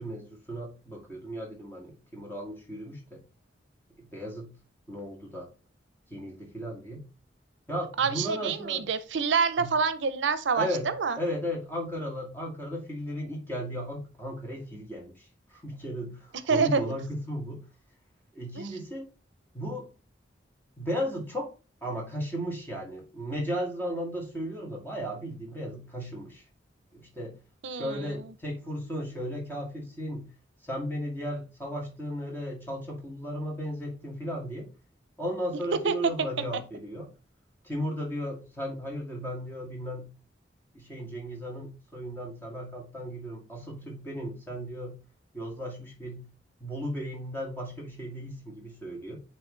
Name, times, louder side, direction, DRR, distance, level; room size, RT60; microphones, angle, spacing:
voice 1, 0.0-3.2 4.0-4.5 4.9-5.5 6.1-7.0 7.7-8.9 9.6-9.7 10.6-10.9 11.2-17.6 18.3-19.1 19.5-19.9 20.8-21.5 21.8-26.4 26.9-27.4 27.8-30.3 30.6-34.7 35.2-37.1 37.6-40.1 40.7-45.0 45.3-46.3 46.6-49.2, equal, 10° left, 1.9 m, -35 dB
voice 2, 8.0-11.2 16.5-16.8 18.6-18.7 27.6-28.1 35.8-35.9, right 5 dB, 80° right, 0.5 m, -27 dB
9.1 x 3.2 x 3.2 m
head